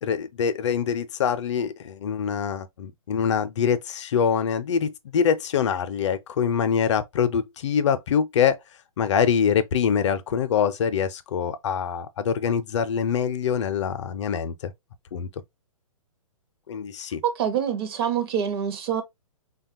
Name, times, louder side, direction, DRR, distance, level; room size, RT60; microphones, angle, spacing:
voice 1, 0.0-8.6 9.0-14.7 15.1-15.3 16.7-17.2, left 7 dB, 55° left, 0.5 m, -24 dB
voice 2, 17.2-19.0, right 8 dB, 45° right, 0.6 m, -25 dB
3.3 x 2.2 x 2.6 m
figure-of-eight pair, 125°, 18 cm